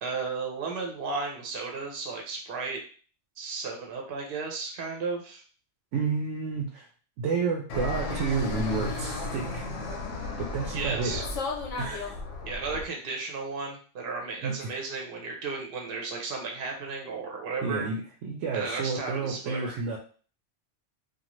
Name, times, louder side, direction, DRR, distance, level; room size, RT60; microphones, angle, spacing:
voice 1, 0.0-2.8 3.4-5.4 10.7-11.2 12.4-17.9 18.5-19.8, right 4 dB, 55° right, 1 dB, 0.9 m, -34 dB
voice 2, 5.9-6.9 7.2-9.7 10.4-11.2 11.8-12.2 14.4-14.7 17.6-20.0, right 4 dB, 85° right, 1 dB, 0.9 m, -30 dB
Fixed-wing aircraft airplane, 7.7-12.8, left 3 dB, 85° left, 1.0 m, -34 dB
2.6 x 2.4 x 3.0 m, 0.41 s
omnidirectional pair, 1.2 m